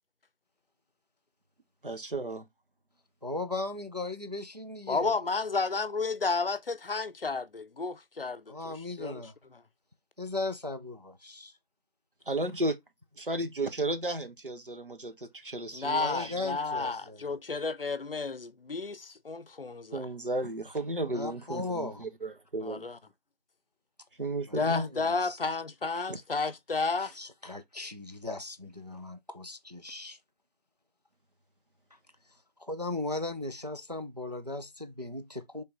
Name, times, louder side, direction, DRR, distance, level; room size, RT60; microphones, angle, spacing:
voice 1, 1.8-2.5 12.3-12.8 13.2-16.5 19.9-22.8 24.2-24.8 26.1-26.2, right 1 dB, 60° right, 0.9 m, -33 dB
voice 2, 3.2-5.2 8.5-9.3 10.2-11.6 15.9-17.3 21.1-22.0 24.4-25.4 26.0-26.1 27.0-30.2 32.6-35.6, left 2 dB, 45° right, 0.4 m, -37 dB
voice 3, 4.9-9.2 15.7-20.1 22.6-23.0 24.5-27.1, left 4 dB, 65° left, 0.6 m, -32 dB
4.3 x 3.4 x 2.9 m
figure-of-eight pair, 180°, 30 cm